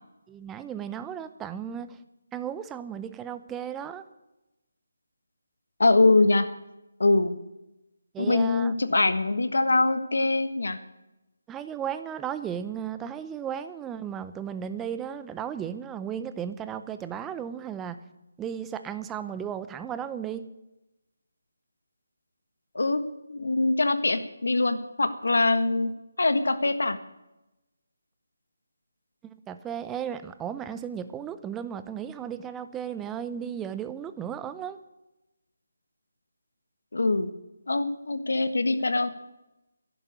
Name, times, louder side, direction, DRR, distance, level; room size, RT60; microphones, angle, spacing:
voice 1, 0.3-2.0 2.3-4.0 8.1-8.7 11.5-18.0 18.4-20.4 29.2-34.8, right 8 dB, 10° right, 11 dB, 0.7 m, -35 dB
voice 2, 5.8-6.5 7.0-7.4 8.2-10.8 22.7-23.0 23.3-25.9 26.2-27.0 36.9-37.3 37.7-39.1, left 2 dB, 80° left, 10 dB, 1.5 m, -23 dB
11.5 x 11.0 x 9.4 m, 0.97 s
figure-of-eight pair, 160°, 0 cm